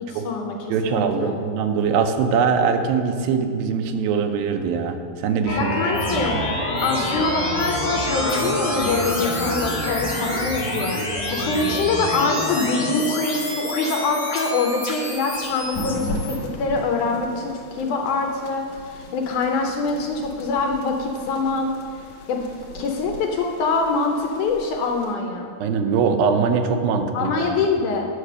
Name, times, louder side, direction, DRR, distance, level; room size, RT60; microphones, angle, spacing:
voice 1, 0.0-0.6 0.9-1.5 5.6-6.4 6.8-18.6 18.9-21.7 22.3-22.4 22.7-25.5 27.1-28.1, left 3 dB, 75° left, 2 dB, 1.9 m, -24 dB
voice 2, 0.7-5.7 6.1-6.4 11.7-11.8 25.6-27.6, right 6 dB, 85° right, 6 dB, 2.5 m, -22 dB
sound 1, 5.4-16.4, left 1 dB, 40° left, 0.7 m, -26 dB
sound 2, 14.7-25.1, left 1 dB, 60° left, 2.2 m, -37 dB
9.7 x 5.8 x 6.7 m, 2.3 s
omnidirectional pair, 4.1 m